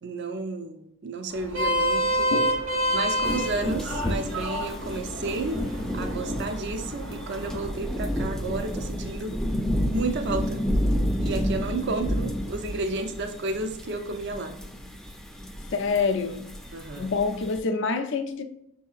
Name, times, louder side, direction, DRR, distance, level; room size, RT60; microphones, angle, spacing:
voice 1, 0.0-2.3 2.9-5.6 5.9-9.3 9.9-10.7 11.2-14.5 16.7-17.1, right 3 dB, 55° right, 0.4 m, -32 dB
Vehicle horn car horn honking, 1.3-7.7, equal, 70° right, 1.2 m, -29 dB
voice 2, 2.3-2.7 15.7-16.5 17.0-18.4, left 4 dB, 60° left, 0.5 m, -27 dB
sound 1, 3.2-17.6, equal, 5° left, 0.4 m, -31 dB
6.3 x 2.7 x 2.4 m
head